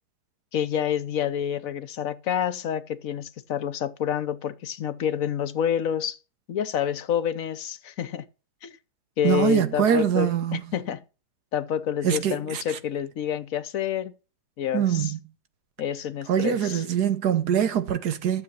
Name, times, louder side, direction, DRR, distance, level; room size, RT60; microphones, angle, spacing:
voice 1, 0.5-6.2 6.5-8.3 8.6-8.7 9.2-11.0 11.5-14.2 14.6-15.1 15.8-16.8, left 9 dB, 60° left, 1.1 m, -28 dB
voice 2, 9.2-10.6 12.0-12.8 14.7-15.2 16.3-18.4, right 9 dB, 75° right, 1.5 m, -23 dB
12.5 x 7.4 x 5.8 m
omnidirectional pair, 1.8 m